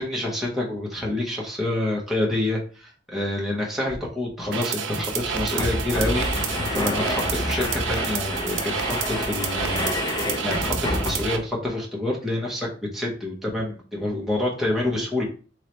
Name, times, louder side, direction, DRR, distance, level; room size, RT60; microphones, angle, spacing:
voice 1, 0.0-9.9 10.4-15.2, left 1 dB, ahead, -4 dB, 0.9 m, -27 dB
sound 1, 3.9-4.0 4.3-4.4 5.1-11.5, left 1 dB, 20° left, 0.6 m, -28 dB
sound 2, 4.5-11.4, right 7 dB, 75° right, 0.6 m, -30 dB
3.7 x 3.2 x 3.0 m, 0.38 s
head